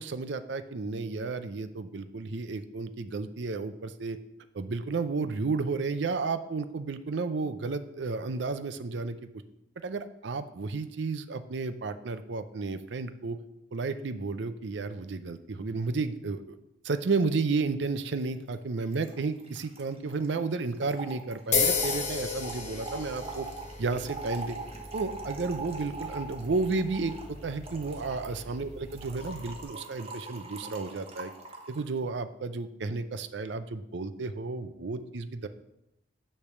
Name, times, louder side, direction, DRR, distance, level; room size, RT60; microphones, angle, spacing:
voice 1, 0.0-4.2 4.5-9.2 9.8-13.4 13.7-16.6 16.8-23.5 23.8-24.5 24.9-31.3 31.7-35.5, right 4 dB, 70° right, 11 dB, 0.5 m, -32 dB
Trickle dribble / Fill (with liquid), 18.2-18.3 18.5-18.6 18.8-31.9, right 3 dB, 30° right, 1.1 m, -43 dB
sound 1, 21.5-29.6, left 5 dB, 40° left, 1.0 m, -35 dB
10.0 x 3.4 x 6.7 m, 0.86 s
head